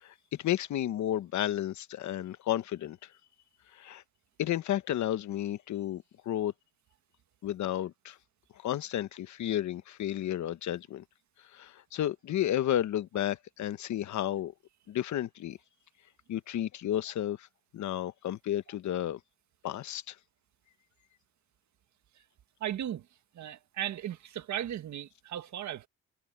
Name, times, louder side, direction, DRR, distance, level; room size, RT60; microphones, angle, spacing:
voice 1, 0.0-3.0 3.7-4.0 4.4-6.5 7.4-8.2 8.6-11.0 11.5-14.5 14.9-15.6 16.3-17.5 17.7-19.2 19.6-20.1, left 12 dB, 70° left, 1.1 m, -32 dB
voice 2, 22.6-23.1 23.4-25.9, right 11 dB, 70° right, 1.8 m, -36 dB
cardioid pair, 90°, 30 cm